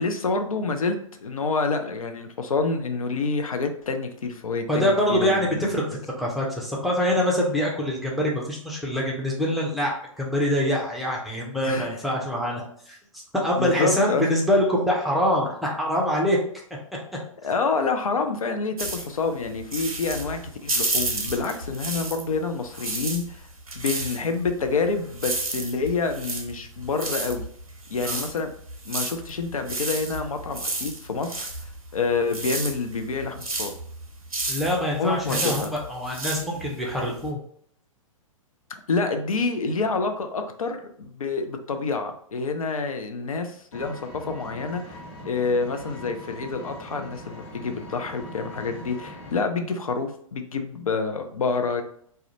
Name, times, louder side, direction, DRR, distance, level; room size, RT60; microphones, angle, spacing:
voice 1, 0.0-5.4 11.6-12.0 13.6-14.3 17.4-23.4 23.8-27.5 27.9-28.5 28.8-33.7 35.0-35.7 38.9-45.0 45.2-51.8, left 4 dB, 75° left, 6 dB, 0.4 m, -27 dB
voice 2, 4.7-5.8 6.2-13.0 13.3-16.4 28.0-28.2 34.5-37.4, equal, ahead, -3 dB, 0.5 m, -24 dB
sound 1, 18.8-22.4 22.7-37.3, right 2 dB, 90° right, 0.7 m, -31 dB
Vehicle, 43.7-49.4, left 1 dB, 50° left, 0.9 m, -41 dB
2.3 x 2.1 x 2.8 m, 0.63 s
figure-of-eight pair, 115°, 18 cm